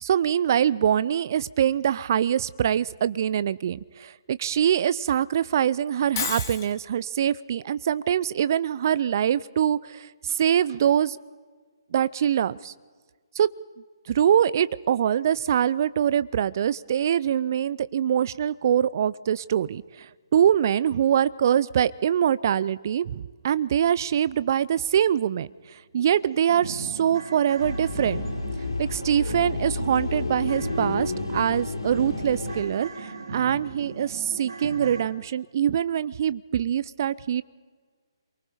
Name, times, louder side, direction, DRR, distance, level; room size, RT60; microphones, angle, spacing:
voice 1, 0.0-11.2 11.9-12.7 13.3-13.5 14.1-28.3 28.8-37.4, right 9 dB, 45° right, 18 dB, 0.6 m, -24 dB
Shatter, 6.2-6.7, left 7 dB, 30° left, 3.5 m, -30 dB
sound 1, 25.0-25.2 25.6-25.7 26.0-35.0, right 3 dB, 60° right, 3.5 m, -38 dB
sound 2, 27.6-32.6, left 3 dB, 80° left, 5.2 m, -31 dB
28.0 x 23.5 x 5.1 m, 1.5 s
figure-of-eight pair, 140°, 3 cm